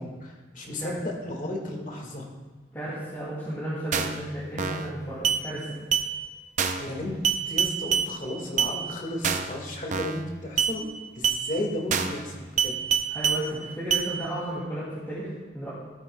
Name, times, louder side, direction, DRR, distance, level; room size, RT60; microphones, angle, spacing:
voice 1, 0.0-2.3 6.8-7.2 7.5-10.9 11.2-12.8, left 1 dB, 45° left, 1 dB, 1.7 m, -34 dB
voice 2, 2.7-5.8 13.1-15.7, right 1 dB, 15° left, -10 dB, 2.3 m, -33 dB
sound 1, 3.9-4.2 4.6-4.9 5.2-5.4 5.9-6.1 6.6-6.9 7.2-8.1 8.6-8.7 9.2-9.5 9.9-10.2 10.6-10.7 11.2-11.4 11.9-12.2 12.6-13.4 13.9-14.1, right 7 dB, 45° right, 0.5 m, -25 dB
14.5 x 8.8 x 2.2 m, 1.4 s
head